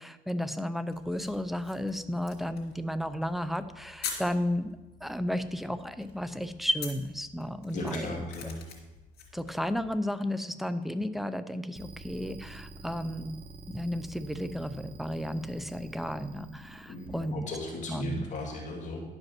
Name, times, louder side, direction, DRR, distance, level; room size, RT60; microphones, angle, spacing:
voice 1, 0.0-4.8 5.0-8.5 9.3-17.5 17.9-18.3, equal, ahead, 11 dB, 0.6 m, -33 dB
sound 1, 0.9-10.0, left 6 dB, 70° left, 2.3 m, -46 dB
voice 2, 7.7-8.5 16.9-19.0, left 2 dB, 45° left, 0 dB, 2.3 m, -36 dB
sound 2, 11.7-17.3, right 2 dB, 30° right, 1.1 m, -47 dB
10.5 x 5.3 x 6.1 m, 1.1 s
cardioid pair, 110°, 17 cm